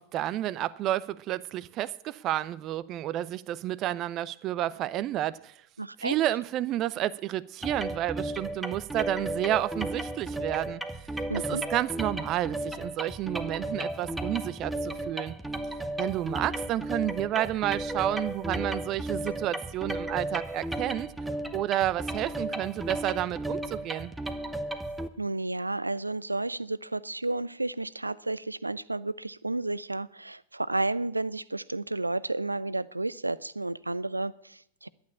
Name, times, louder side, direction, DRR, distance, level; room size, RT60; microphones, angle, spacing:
voice 1, 0.0-5.5 6.0-10.8 11.3-15.4 16.0-21.1 21.5-24.1, right 13 dB, 35° right, 0.5 m, -30 dB
voice 2, 5.8-6.2 11.3-11.6 25.2-34.9, right 2 dB, 85° right, 0.4 m, -32 dB
sound 1, 7.6-25.1, right 1 dB, 5° right, 1.0 m, -34 dB
11.5 x 8.7 x 8.4 m
figure-of-eight pair, 90°, 0 cm